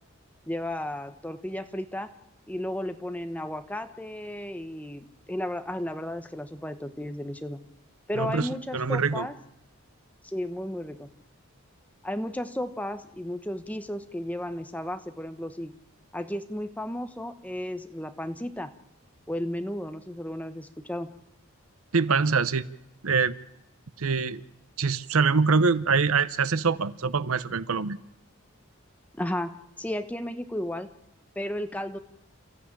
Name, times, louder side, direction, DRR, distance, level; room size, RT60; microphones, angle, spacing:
voice 1, 0.5-2.1 2.5-7.6 8.1-9.4 10.2-11.1 12.0-15.7 16.1-18.7 19.3-21.1 29.2-30.9 31.4-32.0, left 1 dB, 5° left, 9 dB, 0.9 m, -34 dB
voice 2, 8.2-8.5 8.7-9.3 21.9-22.7 23.0-23.3 24.0-24.4 24.8-28.0, right 5 dB, 80° right, 16 dB, 0.8 m, -24 dB
29.0 x 14.5 x 8.7 m, 0.86 s
head